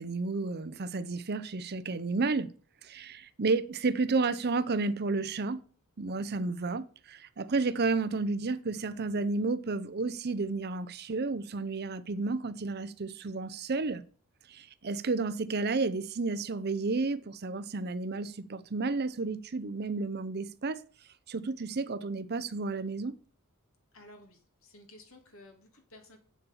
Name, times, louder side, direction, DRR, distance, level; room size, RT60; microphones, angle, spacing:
voice 1, 0.0-2.5 2.8-5.6 6.0-14.0 14.5-20.8 21.3-23.1, right 3 dB, 45° right, 0.6 m, -31 dB
voice 2, 23.9-26.2, left 1 dB, 65° left, 2.8 m, -54 dB
8.6 x 6.9 x 7.0 m
head